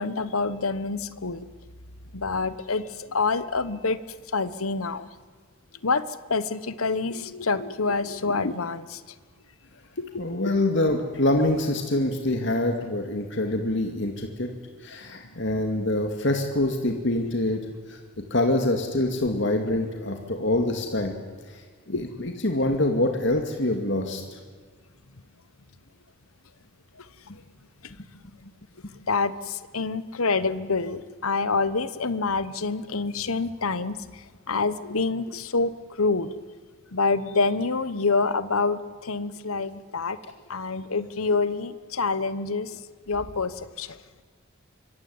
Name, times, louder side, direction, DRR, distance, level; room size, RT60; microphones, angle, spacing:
voice 1, 0.0-1.5 2.1-4.0 4.3-5.1 5.8-9.0 10.0-10.4 21.9-22.0 27.0-27.1 29.1-36.3 36.9-40.2 40.5-42.8 43.1-44.0, left 4 dB, 85° left, 14 dB, 1.2 m, -27 dB
voice 2, 10.2-14.5 14.8-17.6 17.9-18.0 18.3-21.2 21.9-24.4 28.8-28.9, left 1 dB, 55° left, 3 dB, 2.3 m, -25 dB
25.5 x 22.5 x 9.6 m, 1.5 s
head